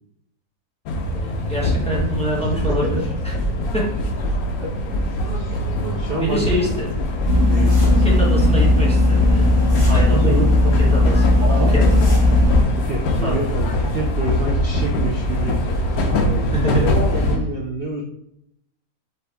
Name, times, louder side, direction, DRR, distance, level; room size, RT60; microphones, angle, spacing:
sound 1, 0.9-17.4, left 1 dB, 75° left, 1.1 m, -23 dB
voice 1, 1.2-3.0 3.2-3.3 3.7-3.8 6.2-6.9 7.9-9.5 9.9-10.4 10.8-11.3 11.6-11.8 12.2-12.4 13.2-13.4 16.5-16.8, equal, 5° left, -6 dB, 1.1 m, -25 dB
voice 2, 2.5-3.0 4.6-4.7 5.1-6.4 7.4-8.1 9.9-10.8 11.4-11.8 12.8-15.6 16.1-18.0, right 2 dB, 65° right, 0 dB, 0.5 m, -28 dB
sound 2, 7.2-12.6, left 2 dB, 30° left, 1.4 m, -16 dB
5.0 x 2.8 x 3.4 m, 0.79 s
omnidirectional pair, 1.7 m